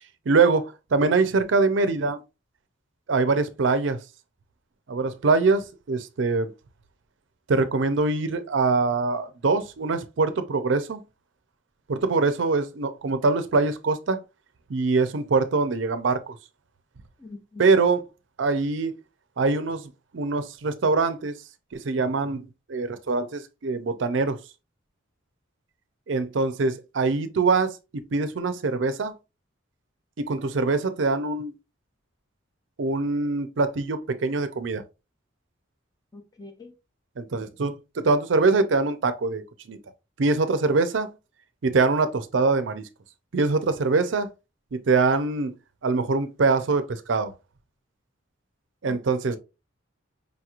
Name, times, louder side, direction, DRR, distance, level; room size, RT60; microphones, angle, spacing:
voice 1, 0.3-2.2 3.1-4.0 4.9-6.5 7.5-11.0 11.9-14.2 14.7-16.3 17.6-18.0 18.4-18.9 19.4-19.8 20.1-21.4 21.7-24.4 26.1-29.1 30.2-31.5 32.8-34.8 37.2-37.7 38.0-39.4 39.7-39.8 40.2-41.1 41.6-42.8 43.3-44.3 44.7-45.5 45.8-47.3 48.8-49.4, right 3 dB, 65° right, 0.5 m, -23 dB
voice 2, 17.2-17.6 36.1-36.7 48.8-49.4, left 3 dB, 20° left, 0.7 m, -44 dB
5.2 x 2.9 x 2.4 m
head